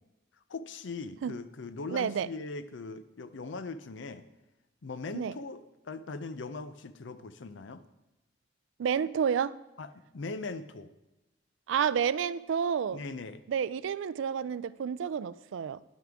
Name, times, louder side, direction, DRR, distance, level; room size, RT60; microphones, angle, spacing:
voice 1, 0.5-4.2 4.8-5.6 5.8-7.8 9.8-9.9 10.1-10.9 12.9-13.4, left 3 dB, 70° left, 12 dB, 0.5 m, -40 dB
voice 2, 1.9-2.3 5.1-5.3 8.8-9.6 11.7-13.0 13.5-15.8, right 7 dB, 75° right, 17 dB, 0.3 m, -30 dB
10.5 x 9.4 x 3.5 m, 1.0 s
head